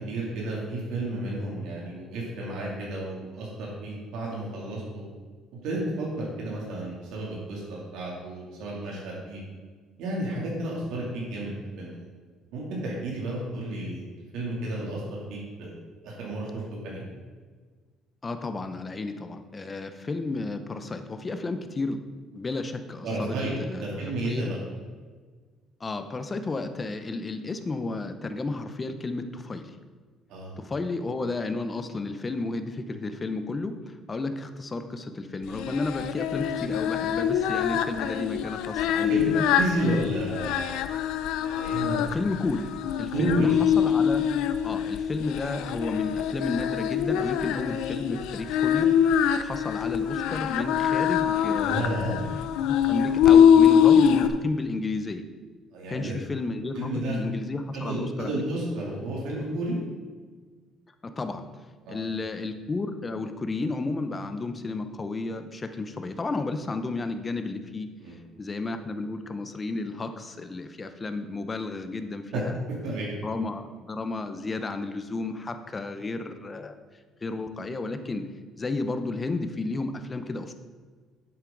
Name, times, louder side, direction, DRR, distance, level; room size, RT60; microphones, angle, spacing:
voice 1, 0.0-5.0 5.6-9.4 10.0-11.5 11.8-12.1 12.5-14.0 14.3-15.7 16.0-17.1 23.0-24.6 30.3-30.5 39.1-39.2 39.5-40.8 41.4-42.0 43.1-43.5 44.6-44.7 51.6-52.2 55.7-56.1 56.7-57.2 57.7-59.8 61.8-62.0 68.0-68.2 72.3-72.4 72.8-73.2, right 1 dB, 80° right, -4 dB, 2.8 m, -32 dB
voice 2, 18.2-22.0 22.3-24.5 25.8-29.8 30.6-39.4 42.1-42.7 43.0-44.3 44.6-52.0 52.6-55.2 55.9-58.4 61.0-61.4 61.9-67.9 68.4-72.5 73.2-76.7 77.2-78.3 78.6-80.5, left 3 dB, 20° left, 8 dB, 0.7 m, -32 dB
Singing, 35.5-54.3, left 8 dB, 85° left, 0.6 m, -23 dB
10.5 x 7.9 x 3.9 m, 1.5 s
cardioid pair, 145°, 0 cm